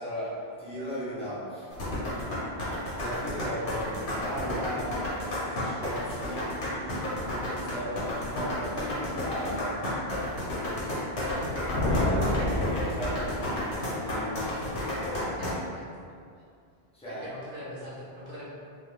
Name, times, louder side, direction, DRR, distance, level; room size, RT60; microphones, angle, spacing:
voice 1, 0.0-1.7 2.9-9.9 11.9-15.7 16.9-17.2, equal, 10° left, -9 dB, 0.3 m, -37 dB
sound 1, 1.7-15.5, left 1 dB, 85° left, 1.1 m, -32 dB
sound 2, 11.4-13.8, left 1 dB, 60° left, 0.7 m, -29 dB
voice 2, 15.3-15.9 17.0-18.5, equal, 50° right, -7 dB, 0.8 m, -42 dB
2.4 x 2.3 x 3.0 m, 2.3 s
omnidirectional pair, 1.1 m